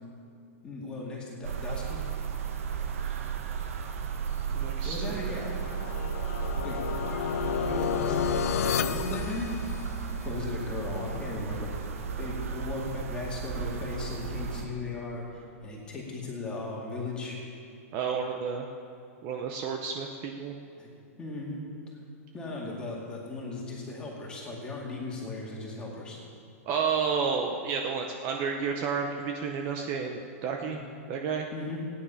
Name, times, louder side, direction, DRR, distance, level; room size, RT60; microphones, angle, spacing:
voice 1, 0.6-2.0 4.8-5.6 6.6-6.8 7.8-8.5 8.8-9.6 10.2-11.7 12.2-17.4 20.8-20.9 21.2-21.6 22.3-26.2 30.7-30.8 31.5-31.8, left 2 dB, 10° left, -3 dB, 2.2 m, -37 dB
sound 1, 1.4-14.6, right 6 dB, 65° right, 1.2 m, -34 dB
voice 2, 4.5-5.4 7.7-8.0 17.9-18.7 19.2-20.6 26.7-30.8 31.1-31.5, right 6 dB, 30° right, 3 dB, 0.7 m, -31 dB
sound 2, 5.0-10.2, left 8 dB, 90° left, 0.6 m, -31 dB
16.0 x 9.8 x 5.7 m, 2.5 s
supercardioid pair, 170°, 8 cm